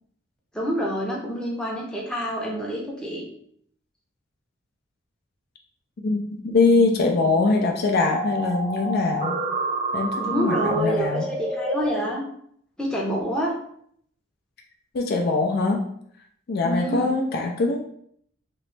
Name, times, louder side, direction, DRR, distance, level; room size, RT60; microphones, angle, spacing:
voice 1, 0.5-3.2 10.2-12.2 12.8-13.5 16.6-17.1, equal, 5° left, -3 dB, 0.6 m, -27 dB
voice 2, 6.0-9.4 9.9-11.2 14.9-15.8 16.5-17.8, left 3 dB, 50° left, 2 dB, 0.4 m, -22 dB
sound 1, 8.1-12.0, right 2 dB, 30° right, 0.7 m, -28 dB
3.0 x 3.0 x 3.2 m, 0.67 s
head